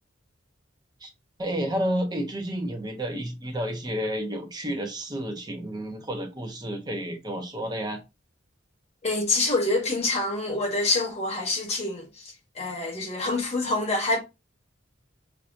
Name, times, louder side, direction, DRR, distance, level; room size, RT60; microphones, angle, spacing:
voice 1, 1.4-8.0, equal, 20° right, 0.8 m, -31 dB
voice 2, 9.0-14.2, left 2 dB, 35° left, 1.2 m, -26 dB
5.7 x 2.0 x 2.5 m
head